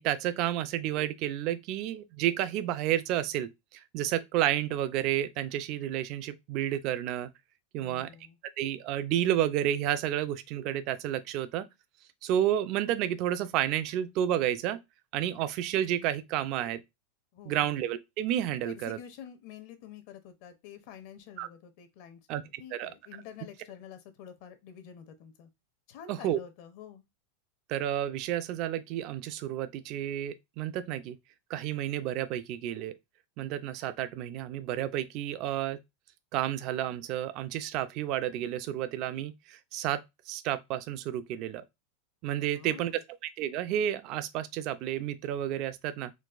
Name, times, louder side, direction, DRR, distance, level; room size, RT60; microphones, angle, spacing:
voice 1, 0.0-7.3 7.7-8.1 8.6-11.7 12.2-14.8 15.1-16.8 17.4-19.0 21.4-21.5 22.3-22.4 22.7-22.9 26.1-26.4 27.7-31.2 31.5-32.9 33.4-35.8 36.3-41.6 42.2-42.9 43.4-46.1, right 11 dB, 40° right, 0.3 m, -31 dB
voice 2, 7.8-8.4 17.3-17.8 18.6-25.5 25.9-27.0 42.4-43.0, left 8 dB, 50° left, 0.6 m, -48 dB
3.9 x 2.4 x 2.4 m
supercardioid pair, 150°, 0 cm